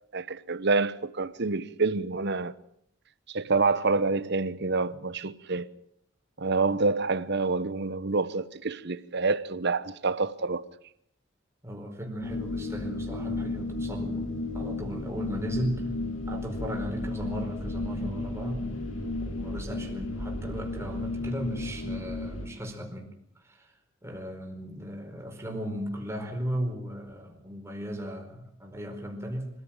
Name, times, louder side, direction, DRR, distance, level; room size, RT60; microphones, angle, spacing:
voice 1, 0.1-2.5 3.3-5.7 6.4-10.6, right 3 dB, 55° right, 1.0 m, -27 dB
voice 2, 11.6-15.9 16.3-18.7 19.2-23.7 24.0-29.5, equal, 15° right, 4.8 m, -36 dB
sound 1, 12.2-22.5, left 2 dB, 65° left, 3.0 m, -33 dB
26.0 x 14.5 x 9.0 m
head